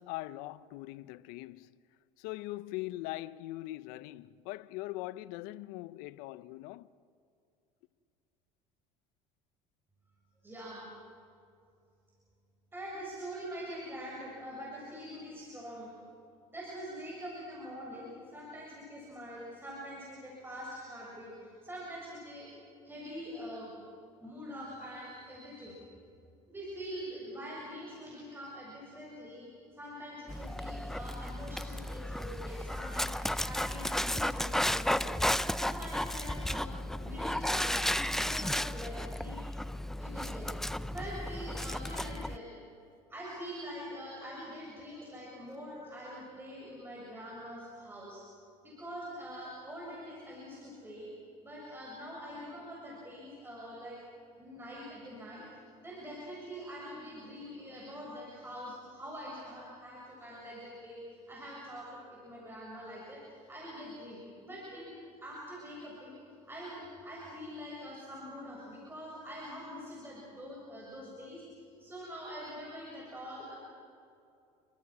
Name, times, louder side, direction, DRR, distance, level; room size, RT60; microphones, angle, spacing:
voice 1, 0.0-1.8 2.2-6.9, left 17 dB, 75° left, 0.7 m, -41 dB
voice 2, 10.4-10.9 12.7-15.9 16.5-22.5 22.8-23.7 24.2-25.8 26.5-35.1 35.5-39.5 40.0-40.5 40.9-42.5 43.1-48.2 48.6-51.1 51.4-54.0 54.4-55.4 55.8-66.2 66.4-73.5, equal, 15° right, 7.1 m, -44 dB
Dog, 30.3-42.4, left 1 dB, 5° left, 0.6 m, -34 dB
28.5 x 24.0 x 6.2 m
supercardioid pair, 95°, 15 cm